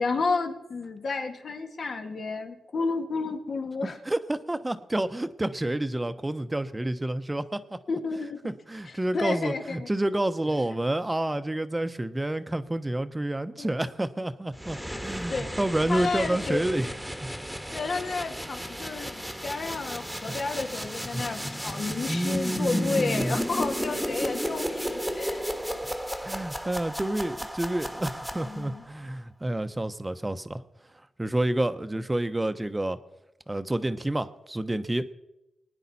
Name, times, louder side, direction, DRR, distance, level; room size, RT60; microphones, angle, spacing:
voice 1, 0.0-4.0 7.9-8.4 8.8-9.9 13.6-13.9 15.1-15.5 15.9-16.6 17.7-25.4 28.4-28.8, left 4 dB, 60° left, 5 dB, 1.7 m, -31 dB
voice 2, 3.8-7.8 8.4-16.9 17.2-17.3 20.3-20.4 21.1-21.2 22.1-23.4 26.2-30.6 31.2-33.0 33.5-35.1, right 1 dB, 15° right, 11 dB, 0.9 m, -29 dB
sound 1, 14.5-28.8, equal, ahead, 1.4 m, -33 dB
21.5 x 9.9 x 4.2 m, 0.93 s
cardioid pair, 65°, 0 cm